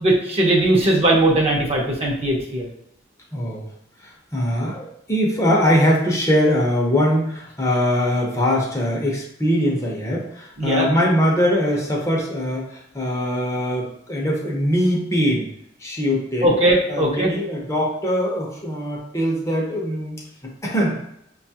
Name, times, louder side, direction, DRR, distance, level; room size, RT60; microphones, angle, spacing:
voice 1, 0.0-2.7 10.6-10.9 16.4-17.3, right 1 dB, 35° right, -1 dB, 0.7 m, -19 dB
voice 2, 3.3-3.6 4.0-15.5 15.8-16.6 16.9-21.0, equal, 15° left, -3 dB, 0.7 m, -22 dB
5.2 x 2.3 x 2.7 m, 0.78 s
head